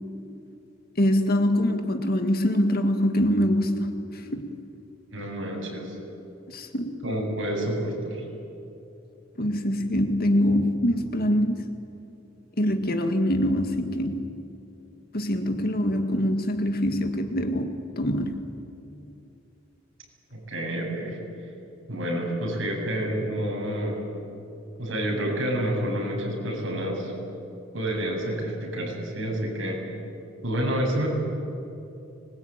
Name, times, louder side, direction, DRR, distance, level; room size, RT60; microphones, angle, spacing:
voice 1, 1.0-4.5 6.5-7.0 9.4-11.7 12.6-14.3 15.1-18.5, equal, 50° left, 6 dB, 2.0 m, -24 dB
voice 2, 5.1-6.0 7.0-8.2 20.5-21.2 21.9-24.0 24.8-27.1 27.7-29.8 30.4-31.1, right 1 dB, 70° right, -1 dB, 7.9 m, -28 dB
25.5 x 21.5 x 9.1 m, 2.7 s
head